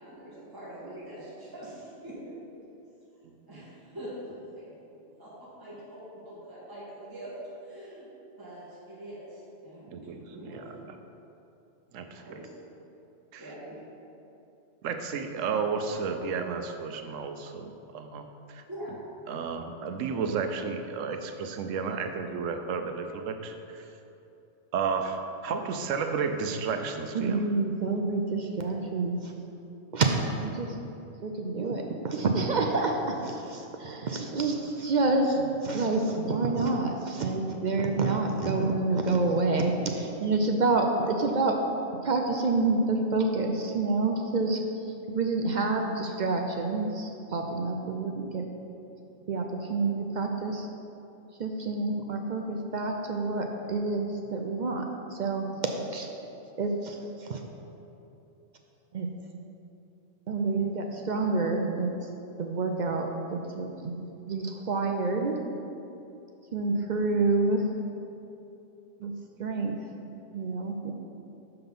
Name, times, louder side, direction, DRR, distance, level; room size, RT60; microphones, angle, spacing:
voice 1, 0.0-2.2 2.5-2.6 3.5-4.1 4.5-7.3 7.6-8.1 8.4-10.7 12.1-12.5 13.4-13.8 18.7-18.9, right 1 dB, 15° right, -8 dB, 1.5 m, -44 dB
voice 2, 9.9-10.8 11.9-12.4 13.3-13.4 14.8-18.2 18.5-18.6 19.3-23.9 24.7-27.4, right 5 dB, 85° right, 7 dB, 1.0 m, -32 dB
voice 3, 27.1-29.3 29.9-30.1 30.4-30.8 31.2-41.6 42.0-44.6 44.9-48.5 49.3-50.7 51.4-55.5 55.9-57.4 58.9-59.1 60.3-62.0 62.4-64.0 64.3-65.4 66.5-67.7 69.0-69.8 70.3-70.9, right 3 dB, 55° right, 3 dB, 0.5 m, -28 dB
6.8 x 5.8 x 5.4 m, 2.8 s
omnidirectional pair, 1.3 m